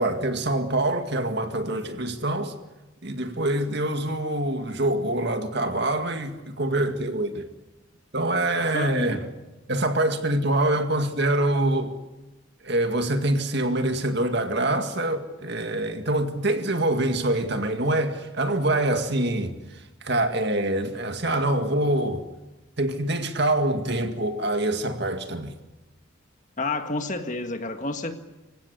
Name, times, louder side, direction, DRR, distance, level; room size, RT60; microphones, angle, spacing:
voice 1, 0.0-2.6 3.0-7.5 8.1-9.2 9.7-12.0 12.6-22.2 22.8-25.5, right 1 dB, 55° right, 2.1 m, -25 dB
voice 2, 8.7-9.2 26.6-28.2, left 2 dB, 35° left, 1.7 m, -30 dB
26.5 x 16.5 x 10.0 m
head